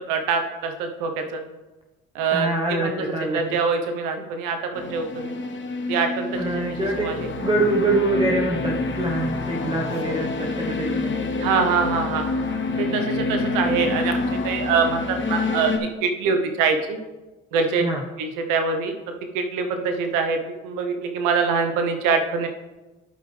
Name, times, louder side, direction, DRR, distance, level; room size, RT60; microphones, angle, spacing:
voice 1, 0.1-1.4 2.1-5.4 5.9-7.3 11.4-12.3 12.8-17.0 17.5-17.8 18.2-18.9 19.3-22.5, right 5 dB, 80° right, 5 dB, 1.1 m, -24 dB
voice 2, 2.3-3.4 6.4-7.1 7.4-11.2 17.8-18.0, right 2 dB, 15° right, -1 dB, 1.3 m, -25 dB
sound 1, 4.7-15.8, left 3 dB, 35° left, 1.3 m, -27 dB
11.5 x 5.3 x 3.4 m, 1.1 s
hypercardioid pair, 55°, 32 cm